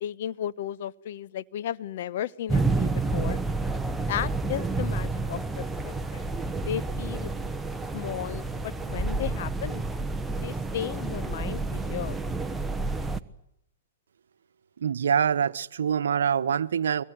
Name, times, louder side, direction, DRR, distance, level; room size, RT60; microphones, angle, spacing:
voice 1, 0.0-3.4 4.1-7.3 7.9-9.8 10.4-12.2, left 11 dB, 55° left, 1.0 m, -35 dB
sound 1, 2.5-13.2, right 3 dB, 5° right, 1.1 m, -29 dB
voice 2, 14.8-17.0, right 7 dB, 75° right, 1.0 m, -25 dB
24.5 x 22.5 x 9.4 m
hypercardioid pair, 130°, 0 cm